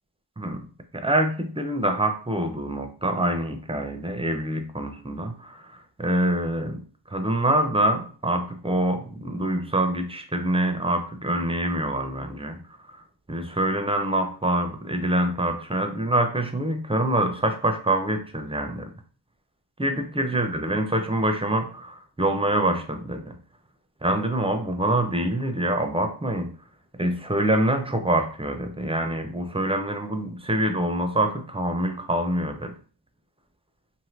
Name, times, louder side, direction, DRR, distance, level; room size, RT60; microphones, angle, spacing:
voice 1, 0.4-0.7 0.9-12.6 13.3-18.9 19.8-23.4 24.0-26.6 26.9-32.8, right 1 dB, 15° right, 6 dB, 0.4 m, -25 dB
2.6 x 2.5 x 3.1 m, 0.40 s
wide cardioid pair, 40°, 46 cm